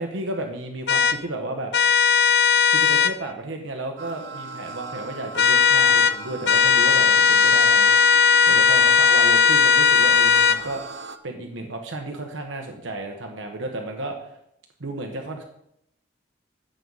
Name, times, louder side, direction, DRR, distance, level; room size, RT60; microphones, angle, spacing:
voice 1, 0.0-1.7 2.7-14.4 14.8-15.4, right 2 dB, 85° right, 3 dB, 1.3 m, -33 dB
sound 1, 0.9-1.2 1.7-3.1 5.4-6.2 6.5-10.6, left 6 dB, 55° left, 0.5 m, -17 dB
sound 2, 4.0-11.2, right 3 dB, 70° right, 0.9 m, -38 dB
14.5 x 7.8 x 4.1 m, 0.76 s
head